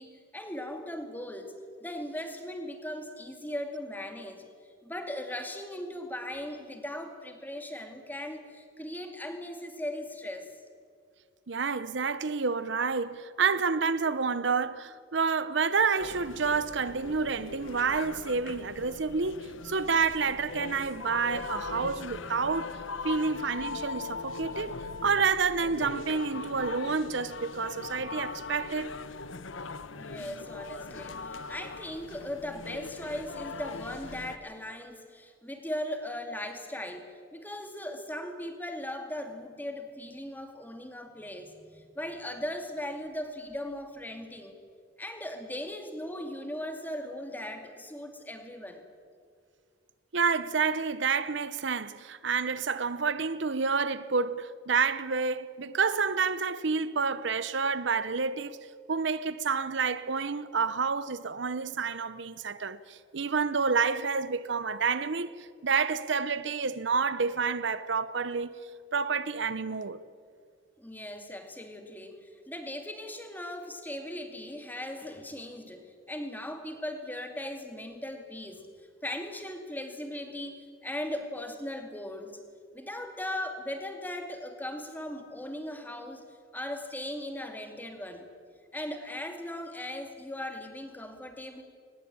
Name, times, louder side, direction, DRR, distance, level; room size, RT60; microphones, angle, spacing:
voice 1, 0.0-4.4 4.8-10.5 30.0-44.6 45.0-48.8 70.8-78.7 79.0-82.4 82.7-86.2 86.5-88.3 88.7-91.6, left 1 dB, 10° left, 2.3 m, -38 dB
voice 2, 11.5-24.8 25.0-29.0 50.1-58.6 58.9-68.5 68.9-70.0, right 5 dB, 60° right, 0.7 m, -29 dB
sound 1, 16.0-34.4, left 4 dB, 75° left, 1.0 m, -40 dB
22.5 x 20.0 x 8.8 m
head